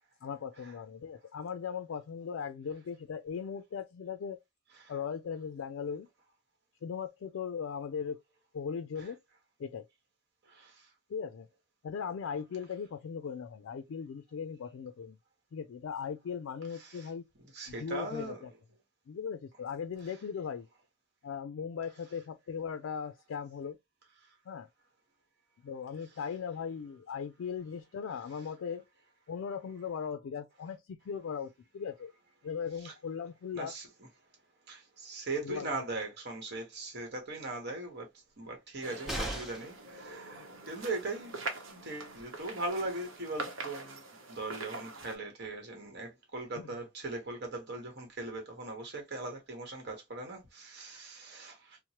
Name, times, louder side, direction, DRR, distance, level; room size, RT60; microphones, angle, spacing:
voice 1, 0.2-4.4 4.9-6.1 6.8-8.2 8.5-9.2 9.6-9.8 11.1-11.5 11.8-15.2 15.5-17.3 17.7-18.5 19.1-20.7 21.2-23.8 24.5-24.7 25.6-28.8 29.3-32.1 32.4-33.7 35.4-35.8 46.6-46.7, left 6 dB, 75° left, 0.3 m, -38 dB
voice 2, 10.4-10.9 16.7-17.1 17.4-18.4 20.1-20.2 24.2-24.4 32.8-32.9 33.5-34.1 34.7-38.1 38.4-41.3 41.7-51.8, right 2 dB, 55° right, 1.0 m, -40 dB
sound 1, 38.8-45.2, right 3 dB, 75° right, 0.8 m, -44 dB
sound 2, 39.1-39.8 41.8-41.9 42.2-42.3, right 1 dB, ahead, 0.7 m, -37 dB
2.9 x 2.1 x 2.8 m
head